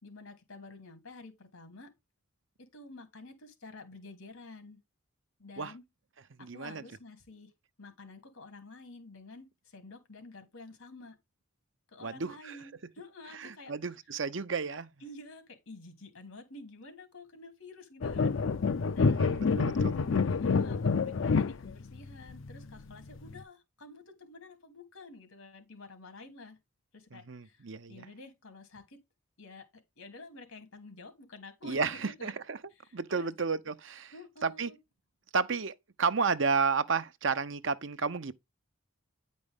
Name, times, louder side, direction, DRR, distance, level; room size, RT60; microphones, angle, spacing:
voice 1, 0.0-1.9 2.6-4.8 5.4-5.8 6.4-7.5 7.8-11.2 11.9-13.7 15.0-18.4 18.9-19.3 20.3-26.6 26.9-29.0 29.4-32.4 32.7-33.3 34.1-34.8, left 2 dB, 80° left, 2.9 m, -50 dB
voice 2, 6.4-6.8 12.0-12.6 13.4-14.9 19.0-20.0 27.1-28.1 31.6-32.6 32.9-34.1 34.4-34.7 35.3-38.3, right 5 dB, 65° right, 0.7 m, -32 dB
sound 1, 18.0-23.4, left 4 dB, 65° left, 0.5 m, -28 dB
9.8 x 5.2 x 3.6 m
head